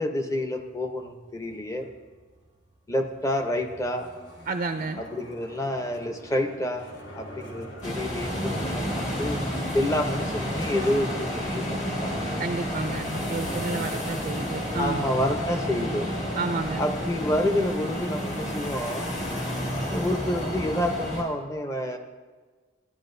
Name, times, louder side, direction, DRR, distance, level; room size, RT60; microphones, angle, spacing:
voice 1, 0.0-1.9 2.9-4.1 5.0-6.9 7.2-9.4 9.7-12.3 14.8-16.1 16.8-19.1 19.9-22.0, left 1 dB, 15° left, 5 dB, 0.7 m, -28 dB
sound 1, 0.5-19.8, equal, 75° left, 2.0 m, -48 dB
voice 2, 4.5-5.0 12.4-15.0 16.4-16.8, right 3 dB, 40° right, 7 dB, 0.4 m, -31 dB
sound 2, 7.8-21.2, equal, 40° left, 1.9 m, -30 dB
14.0 x 10.5 x 2.6 m, 1.4 s
head